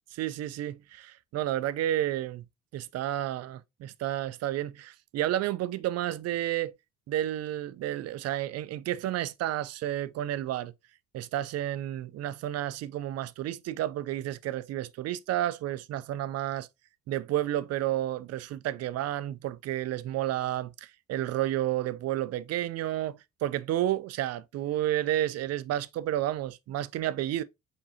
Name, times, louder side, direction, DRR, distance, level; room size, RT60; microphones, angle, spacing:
voice 1, 0.1-2.4 2.7-6.7 7.1-10.7 11.1-16.7 17.1-27.4, right 13 dB, 45° right, 0.5 m, -31 dB
4.7 x 3.6 x 2.7 m
hypercardioid pair, 55°, 35 cm